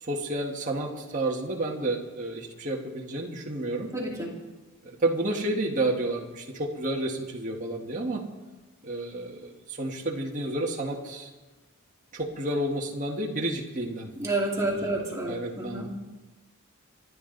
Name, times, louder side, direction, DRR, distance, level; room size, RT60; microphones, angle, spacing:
voice 1, 0.0-3.9 4.8-8.3 8.8-11.3 12.1-14.1 14.5-15.9, right 1 dB, 35° right, -1 dB, 1.7 m, -31 dB
voice 2, 3.9-4.3 14.2-15.9, right 2 dB, 15° right, -2 dB, 2.5 m, -29 dB
27.0 x 11.0 x 4.0 m, 1.2 s
head